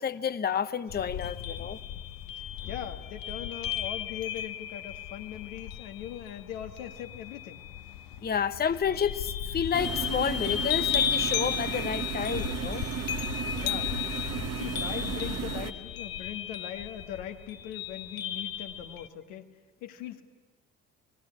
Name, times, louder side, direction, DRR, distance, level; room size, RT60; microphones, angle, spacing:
voice 1, 0.0-1.8 8.2-12.8, left 7 dB, 25° left, 13 dB, 0.8 m, -30 dB
sound 1, 0.9-19.1, left 9 dB, 60° left, 1.1 m, -35 dB
voice 2, 2.4-7.6 13.5-14.1 14.5-19.5 19.8-20.2, left 10 dB, 75° left, 6 dB, 1.6 m, -40 dB
sound 2, 9.7-15.7, right 7 dB, 40° right, 1.3 m, -35 dB
27.5 x 20.0 x 9.6 m, 1.4 s
figure-of-eight pair, 50°, 39 cm